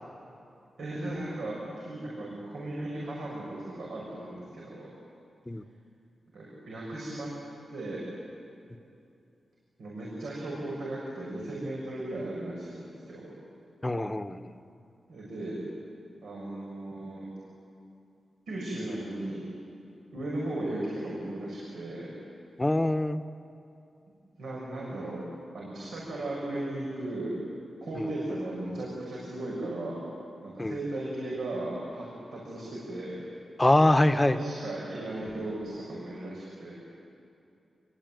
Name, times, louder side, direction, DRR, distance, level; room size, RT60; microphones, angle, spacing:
voice 1, 0.8-4.9 6.3-7.3 7.7-8.1 9.8-13.3 15.1-15.6 16.2-17.3 18.5-19.4 20.1-22.1 24.4-25.2 25.5-27.3 27.8-30.0 30.4-33.2 34.2-36.8, right 1 dB, 90° right, -4 dB, 7.0 m, -36 dB
voice 2, 13.8-14.5 22.6-23.2 28.0-28.1 30.6-30.7 33.6-34.4, left 1 dB, 15° left, 10 dB, 1.0 m, -24 dB
27.5 x 23.0 x 9.3 m, 2.6 s
wide cardioid pair, 115°, 0 cm